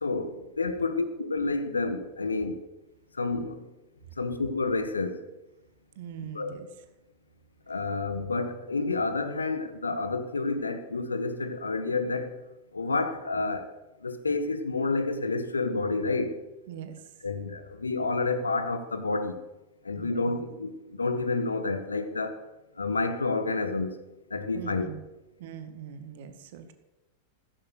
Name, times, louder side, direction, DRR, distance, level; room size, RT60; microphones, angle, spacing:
voice 1, 0.0-2.6 3.1-3.7 4.2-5.2 6.2-6.6 7.7-12.3 12.7-13.7 14.0-16.4 17.2-19.4 19.8-22.4 22.8-24.0 24.3-24.9, left 3 dB, 75° left, 10 dB, 1.6 m, -29 dB
voice 2, 6.0-6.7 16.7-17.0 20.0-20.2 24.5-25.0 25.4-26.7, right 8 dB, 55° right, 9 dB, 2.0 m, -41 dB
16.0 x 14.0 x 6.4 m, 1.0 s
figure-of-eight pair, 90°, 0 cm